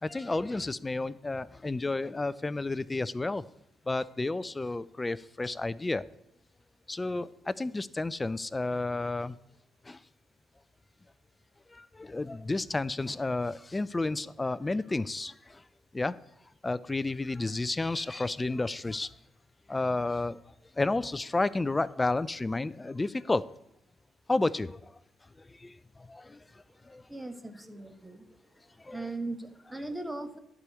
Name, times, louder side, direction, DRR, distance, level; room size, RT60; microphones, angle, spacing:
voice 1, 0.0-3.4 3.9-6.0 6.9-9.3 9.9-10.0 11.7-15.6 15.9-16.1 16.6-19.1 19.7-20.4 20.8-23.4 24.3-24.9 25.6-25.7 26.1-26.4 26.9-27.0 28.8-29.0, left 2 dB, 20° left, 17 dB, 0.4 m, -31 dB
voice 2, 27.1-28.4 28.9-30.4, right 2 dB, 10° right, 8 dB, 1.3 m, -39 dB
11.0 x 4.9 x 8.1 m, 0.81 s
cardioid pair, 90°, 0 cm